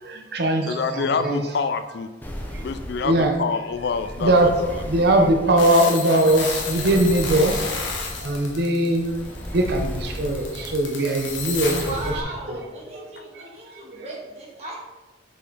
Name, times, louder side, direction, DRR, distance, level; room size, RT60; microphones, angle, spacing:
voice 1, 0.0-1.4 2.5-2.6 3.0-3.4 4.2-4.5 4.9-7.7 8.2-9.1 9.5-12.1 12.5-12.6 12.9-13.1 13.3-14.0, right 1 dB, 55° right, 3 dB, 0.7 m, -21 dB
voice 2, 0.6-2.1 2.6-4.8 11.6-11.8, left 5 dB, 55° left, 11 dB, 0.4 m, -27 dB
sound 1, 2.2-12.2, equal, 10° left, 0.6 m, -35 dB
sound 2, 5.6-12.1, left 4 dB, 75° left, 1.3 m, -32 dB
voice 3, 11.8-14.8, right 2 dB, 35° right, -3 dB, 1.7 m, -36 dB
6.4 x 5.5 x 4.0 m, 1.2 s
head